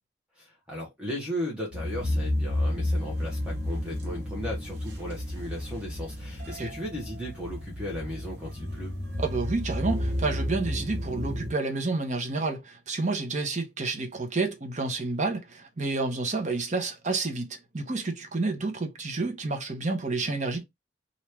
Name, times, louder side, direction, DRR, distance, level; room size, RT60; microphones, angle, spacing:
voice 1, 0.4-8.9, equal, 5° right, 1.0 m, -36 dB
sound 1, 1.7-11.5, left 1 dB, 80° right, 1.2 m, -31 dB
voice 2, 9.2-20.6, right 3 dB, 45° right, 0.8 m, -30 dB
3.0 x 2.7 x 3.3 m
head